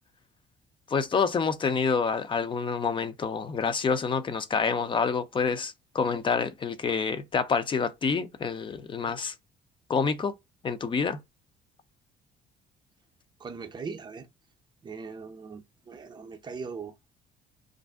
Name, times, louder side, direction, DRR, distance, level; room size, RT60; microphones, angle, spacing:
voice 1, 0.9-9.3 9.9-10.3 10.6-11.2, left 5 dB, 30° left, 0.5 m, -27 dB
voice 2, 13.4-14.3 14.8-16.9, right 5 dB, 25° right, 0.5 m, -40 dB
2.5 x 2.0 x 3.4 m
cardioid pair, 110°, 17 cm